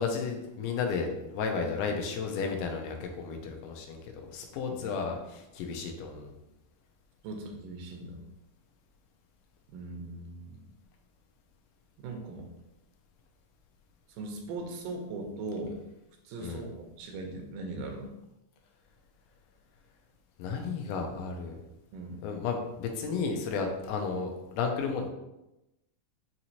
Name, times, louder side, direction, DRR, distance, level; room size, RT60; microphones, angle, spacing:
voice 1, 0.0-4.0 4.3-6.3 16.4-16.7 20.4-21.6 22.2-25.1, left 5 dB, 80° left, 3 dB, 2.2 m, -33 dB
voice 2, 4.7-5.0 7.2-8.2 9.7-10.6 12.0-12.5 14.2-15.8 16.3-18.1 21.9-22.2, right 2 dB, 90° right, 3 dB, 2.3 m, -39 dB
5.9 x 2.9 x 2.7 m, 0.94 s
omnidirectional pair, 3.8 m